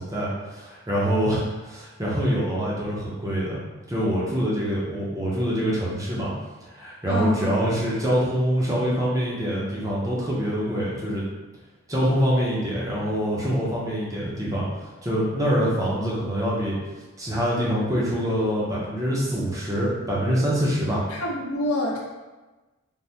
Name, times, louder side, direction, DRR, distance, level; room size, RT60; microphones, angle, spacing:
voice 1, 0.0-3.6 3.9-6.3 6.6-11.2 11.9-14.7 15.0-16.8 17.2-21.0, equal, 15° right, -6 dB, 0.5 m, -25 dB
voice 2, 7.1-7.4 21.1-22.0, left 1 dB, 80° left, -3 dB, 0.7 m, -26 dB
3.4 x 2.1 x 2.7 m, 1.2 s
head